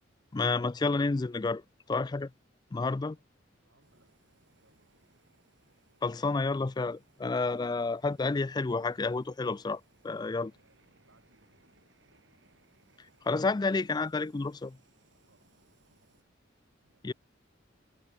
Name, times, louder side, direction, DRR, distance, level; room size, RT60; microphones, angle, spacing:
voice 1, 0.3-1.6 1.9-2.3 2.7-3.2 6.0-10.5 13.3-14.8 17.0-17.1, left 3 dB, 20° left, 0.4 m, -30 dB
voice 2, 3.5-4.1 4.5-5.0 10.5-11.9 15.3-16.0 16.8-17.1, right 2 dB, 85° right, 7.3 m, -70 dB
Fire, 3.8-16.2, right 2 dB, 70° right, 4.9 m, -67 dB
head